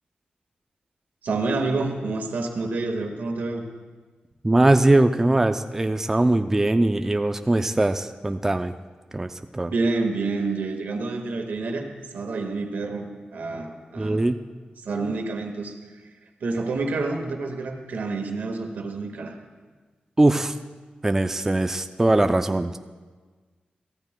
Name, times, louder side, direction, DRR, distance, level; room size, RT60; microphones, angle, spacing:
voice 1, 1.2-3.6 9.7-11.8 12.1-13.1 13.3-14.2 14.8-15.8 16.4-19.3, right 3 dB, 85° right, 3 dB, 1.6 m, -28 dB
voice 2, 4.4-8.7 9.1-9.7 14.0-14.4 20.2-20.5 21.0-22.8, right 2 dB, 15° right, 8 dB, 0.4 m, -21 dB
23.0 x 15.5 x 2.2 m, 1.4 s
wide cardioid pair, 135°, 3 cm